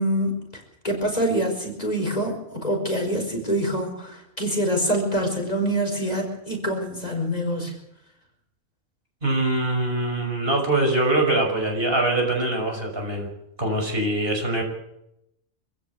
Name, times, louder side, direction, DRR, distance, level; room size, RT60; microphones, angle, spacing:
voice 1, 0.0-7.8, equal, 30° left, 2 dB, 5.2 m, -25 dB
voice 2, 9.2-13.3 13.6-14.6, right 2 dB, 45° right, 2 dB, 6.1 m, -23 dB
26.0 x 16.0 x 8.3 m, 0.83 s
omnidirectional pair, 1.3 m